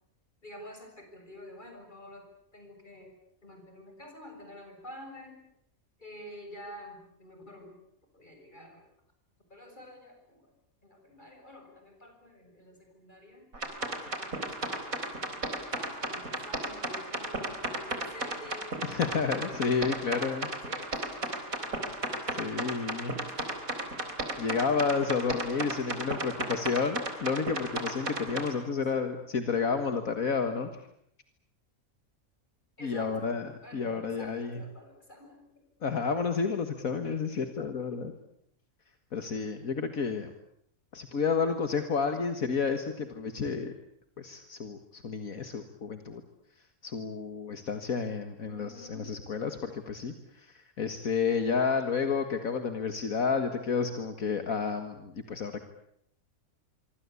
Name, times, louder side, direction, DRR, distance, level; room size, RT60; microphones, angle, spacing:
voice 1, 0.4-2.2 2.5-3.1 3.4-5.4 6.0-7.8 8.1-8.8 9.5-10.5 10.8-13.5 14.2-18.8 19.4-20.0 20.6-21.2 21.6-22.0 23.2-23.5 25.9-26.6 28.9-29.1 32.8-33.3 33.6-35.7 48.4-49.1, left 1 dB, 35° left, 4 dB, 7.4 m, -49 dB
sound 1, 13.5-28.5, right 2 dB, 75° right, 4.5 m, -34 dB
voice 2, 18.8-20.5 22.3-23.2 24.4-30.7 32.8-34.6 35.8-38.1 39.1-40.3 40.9-43.7 44.2-46.2 46.8-55.6, left 5 dB, 75° left, 7 dB, 2.2 m, -31 dB
25.5 x 25.0 x 8.4 m, 0.71 s
omnidirectional pair, 1.5 m